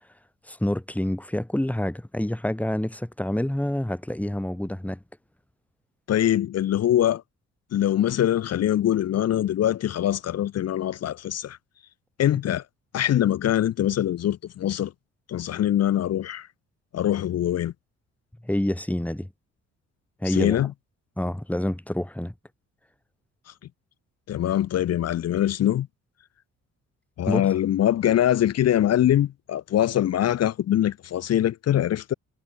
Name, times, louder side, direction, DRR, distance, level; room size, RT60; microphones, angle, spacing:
voice 1, 0.5-5.0 18.4-19.3 20.2-20.6 21.2-22.3 27.3-27.5, left 1 dB, 5° left, 4.7 m, -27 dB
voice 2, 6.1-7.2 7.7-11.6 12.2-12.6 12.9-14.9 15.3-16.5 16.9-17.7 20.3-20.7 24.3-25.9 27.2-32.1, left 11 dB, 55° left, 0.8 m, -23 dB
cardioid pair, 90°, 30 cm